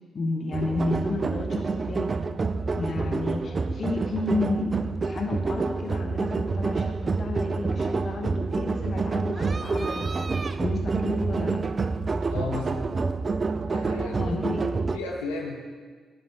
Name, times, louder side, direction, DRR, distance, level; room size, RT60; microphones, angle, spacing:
voice 1, 0.1-2.2 2.7-4.7 5.0-10.3 10.6-11.6 14.2-14.8, left 2 dB, 50° left, 3 dB, 0.9 m, -31 dB
sound 1, 0.5-15.0, right 4 dB, 40° right, 0.3 m, -28 dB
voice 2, 12.3-13.0 13.6-14.3 14.9-15.6, left 3 dB, 85° left, -1 dB, 0.6 m, -34 dB
10.5 x 5.2 x 2.9 m, 1.5 s
hypercardioid pair, 45°, 0 cm